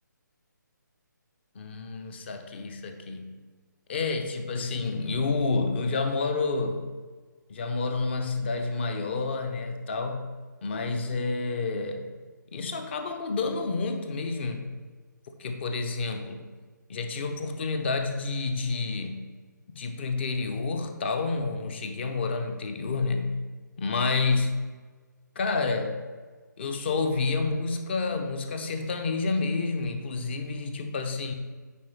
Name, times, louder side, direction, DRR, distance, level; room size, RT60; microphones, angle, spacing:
voice 1, 1.5-3.4 3.9-6.9 7.5-10.3 10.6-12.1 12.5-14.7 15.4-16.5 16.9-19.3 19.7-23.4 23.8-24.6 25.4-26.0 26.6-31.3, left 3 dB, 35° left, 6 dB, 0.6 m, -29 dB
9.3 x 3.7 x 3.3 m, 1.4 s
figure-of-eight pair, 145°, 10 cm